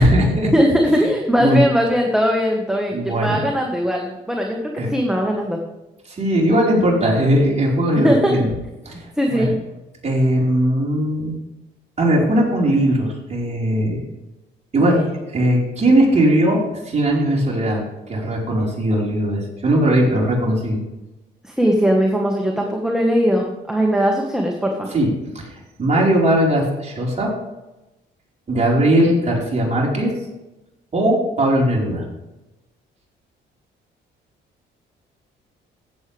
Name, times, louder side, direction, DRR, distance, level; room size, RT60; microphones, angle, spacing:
voice 1, 0.0-0.5 1.4-1.6 2.9-3.4 4.8-5.0 6.1-8.5 8.8-9.5 10.0-11.3 12.0-14.0 14.7-16.6 16.8-20.8 24.9-25.1 25.3-27.3 28.5-30.1 30.9-32.0, right 1 dB, 35° right, -3 dB, 4.7 m, -19 dB
voice 2, 0.5-5.6 8.0-8.3 9.2-9.5 14.9-15.1 21.4-24.9, equal, 5° right, 1 dB, 1.6 m, -19 dB
15.5 x 7.8 x 3.5 m, 1.0 s
cardioid pair, 90°, 20 cm